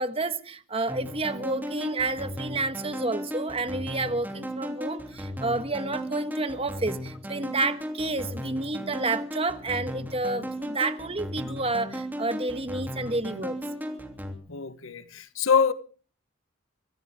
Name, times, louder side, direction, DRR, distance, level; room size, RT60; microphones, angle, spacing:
voice 1, 0.0-13.6, right 2 dB, 30° right, 1.4 m, -30 dB
sound 1, 0.9-14.3, equal, 10° right, 2.9 m, -36 dB
voice 2, 14.5-15.7, left 6 dB, 75° left, 1.2 m, -25 dB
23.5 x 16.5 x 3.6 m
head